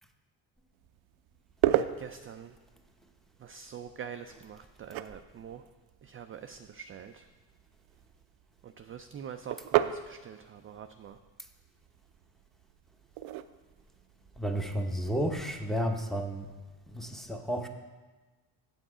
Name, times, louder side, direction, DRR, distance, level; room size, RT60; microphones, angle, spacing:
sound 1, 0.7-15.9, right 13 dB, 75° right, 0.6 m, -37 dB
voice 1, 1.8-2.6 3.4-5.6 6.0-7.3 8.6-11.2, right 8 dB, 30° right, 7 dB, 0.4 m, -45 dB
voice 2, 14.4-16.5 16.9-17.7, equal, ahead, 3 dB, 0.8 m, -32 dB
7.7 x 7.2 x 4.9 m, 1.3 s
cardioid pair, 90°, 47 cm